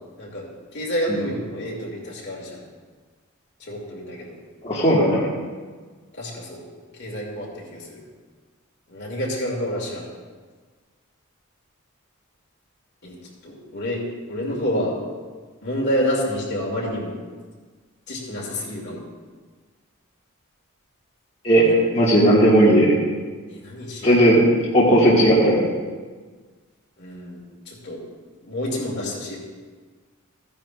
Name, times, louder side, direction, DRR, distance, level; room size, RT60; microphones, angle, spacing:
voice 1, 0.7-2.6 3.6-4.4 6.2-6.6 7.0-8.0 8.9-10.0 13.0-13.2 13.4-14.0 14.3-14.9 15.6-17.2 18.1-19.0 21.6-21.7 23.5-24.1 27.0-27.4 27.7-28.0 28.4-29.4, equal, 55° left, -3 dB, 2.4 m, -28 dB
voice 2, 4.6-5.2 21.4-22.9 24.0-24.4 24.7-25.6, right 1 dB, 30° left, -8 dB, 1.8 m, -16 dB
15.0 x 10.5 x 2.5 m, 1.5 s
head